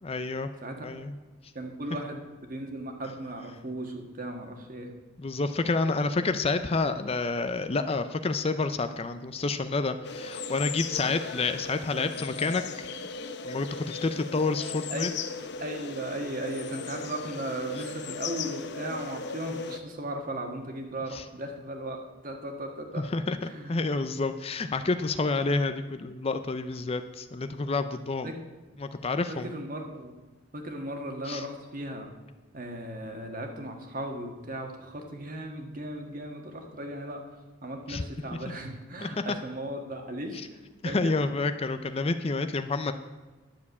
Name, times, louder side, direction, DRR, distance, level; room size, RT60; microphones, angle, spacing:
voice 1, 0.0-0.5 0.8-1.1 5.2-12.9 13.4-15.1 21.1-21.2 23.0-23.4 23.7-28.3 28.8-29.5 31.3-31.4 37.9-38.0 39.0-39.1 40.8-42.9, left 3 dB, 30° left, 10 dB, 0.5 m, -29 dB
voice 2, 1.5-2.2 2.5-4.9 14.9-15.1 15.6-23.1 23.4-23.8 28.2-28.3 29.3-30.1 30.5-32.1 32.5-37.2 37.6-41.1, right 1 dB, 45° right, 4 dB, 1.6 m, -37 dB
sound 1, 10.0-19.8, left 4 dB, 55° left, 0.7 m, -37 dB
10.5 x 7.2 x 8.3 m, 1.2 s
head